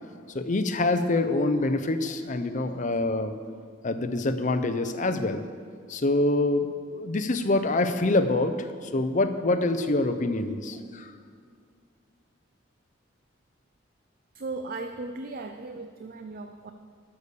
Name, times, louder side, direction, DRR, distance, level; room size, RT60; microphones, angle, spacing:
voice 1, 0.3-3.3 3.8-5.4 5.9-11.1, left 2 dB, 40° left, 9 dB, 0.6 m, -26 dB
voice 2, 14.3-16.7, right 3 dB, 45° right, 7 dB, 0.5 m, -37 dB
11.5 x 6.9 x 6.7 m, 2.1 s
head